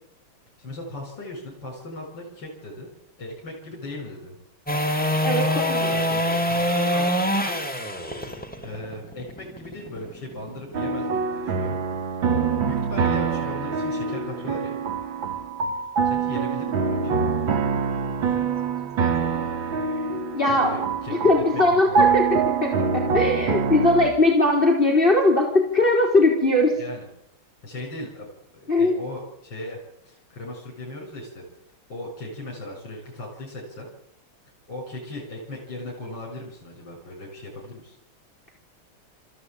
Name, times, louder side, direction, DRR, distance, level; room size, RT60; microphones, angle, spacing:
voice 1, 0.6-4.4 5.2-7.7 8.6-11.8 12.7-14.8 16.0-17.2 20.5-21.3 21.7-22.5 26.8-27.1 27.6-28.3 28.5-29.8 30.0-31.4 31.9-33.9 34.7-38.0, left 1 dB, 60° left, -1 dB, 7.6 m, -37 dB
sound 1, 4.7-10.8 17.3-17.4, equal, 5° left, 2.3 m, -25 dB
voice 2, 5.2-5.9 20.3-20.8 21.1-26.7 28.7-29.0, left 2 dB, 25° left, 1 dB, 3.7 m, -20 dB
sound 2, 10.7-24.1, right 5 dB, 65° right, 2.3 m, -25 dB
26.5 x 15.0 x 8.9 m, 0.82 s
omnidirectional pair, 2.4 m